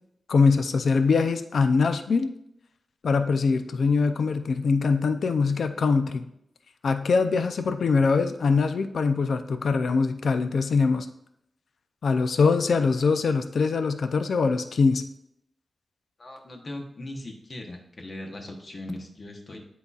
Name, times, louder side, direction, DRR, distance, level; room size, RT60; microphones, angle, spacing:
voice 1, 0.3-2.3 3.0-6.2 6.8-11.1 12.0-15.0, left 4 dB, 65° left, 9 dB, 0.5 m, -23 dB
voice 2, 16.2-19.6, left 1 dB, 35° left, 2 dB, 0.9 m, -39 dB
10.5 x 4.1 x 2.4 m, 0.77 s
wide cardioid pair, 170°, 0 cm